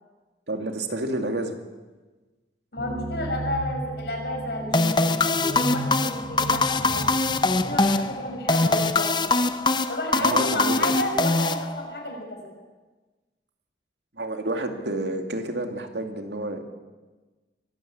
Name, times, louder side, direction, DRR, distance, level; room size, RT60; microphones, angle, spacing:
voice 1, 0.5-1.6 8.6-8.7 10.1-10.9 14.2-16.6, right 1 dB, 85° right, 5 dB, 2.5 m, -30 dB
voice 2, 2.7-7.1 7.6-9.3 9.9-12.4, left 1 dB, 70° left, 1 dB, 6.4 m, -32 dB
sound 1, 2.8-9.4, right 1 dB, 50° right, 3.2 m, -35 dB
sound 2, 4.7-12.1, left 3 dB, 25° left, 0.7 m, -23 dB
23.5 x 15.0 x 8.6 m, 1.2 s
head